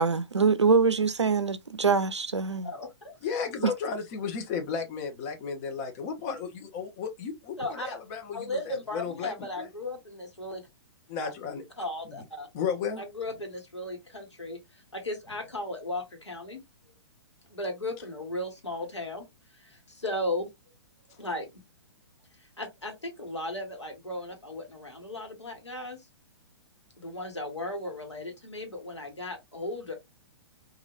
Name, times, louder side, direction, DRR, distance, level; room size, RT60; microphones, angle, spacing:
voice 1, 0.0-2.7, right 5 dB, 90° right, 0.4 m, -24 dB
voice 2, 2.6-3.1 7.6-8.0 8.3-10.7 11.2-11.3 11.8-12.5 13.0-14.6 14.9-16.6 17.5-19.3 19.6-20.5 21.2-21.5 22.6-26.0 27.0-29.9, left 1 dB, 85° left, 1.3 m, -36 dB
voice 3, 3.2-9.7 11.1-11.6 12.0-12.1 12.5-13.0, left 6 dB, 35° left, 0.9 m, -34 dB
3.0 x 2.5 x 2.5 m
figure-of-eight pair, 120°, 14 cm